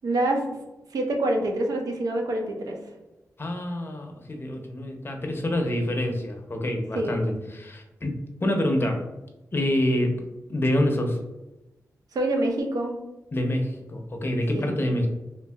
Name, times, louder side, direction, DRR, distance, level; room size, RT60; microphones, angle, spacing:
voice 1, 0.0-0.4 0.9-2.8 6.9-7.3 12.1-12.9 14.5-14.8, right 1 dB, 85° right, 3 dB, 0.6 m, -26 dB
voice 2, 3.4-9.1 9.5-10.2 10.5-11.2 13.3-15.1, left 1 dB, 40° left, 3 dB, 0.6 m, -26 dB
2.8 x 2.6 x 2.3 m, 1.0 s
cardioid pair, 65°, 6 cm